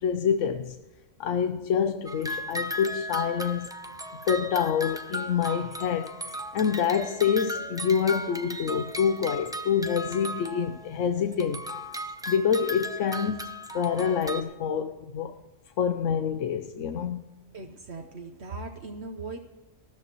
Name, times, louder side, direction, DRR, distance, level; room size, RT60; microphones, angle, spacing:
voice 1, 0.0-0.8 1.2-3.7 4.2-11.7 12.3-13.5 13.7-15.3 15.8-17.2, left 7 dB, 90° left, 1.0 m, -27 dB
sound 1, 2.1-10.9 11.3-14.4, equal, 5° right, 0.5 m, -36 dB
voice 2, 17.5-19.4, right 3 dB, 65° right, 1.2 m, -39 dB
20.0 x 14.0 x 3.0 m
omnidirectional pair, 1.2 m